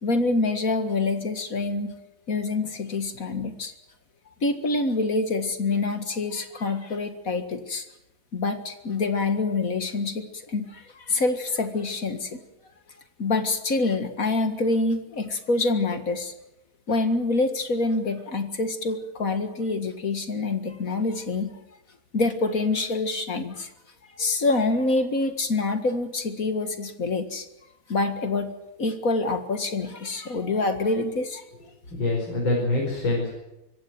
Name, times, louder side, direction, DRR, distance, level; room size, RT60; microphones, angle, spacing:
voice 1, 0.0-1.9 2.3-3.7 4.4-7.9 8.3-12.4 13.2-16.3 16.9-21.5 22.1-23.7 24.1-27.5 27.9-28.5 28.8-31.4, left 3 dB, 45° left, 8 dB, 2.0 m, -26 dB
voice 2, 31.9-33.4, left 2 dB, 70° left, -2 dB, 6.1 m, -25 dB
25.5 x 15.0 x 9.3 m, 0.93 s
omnidirectional pair, 2.2 m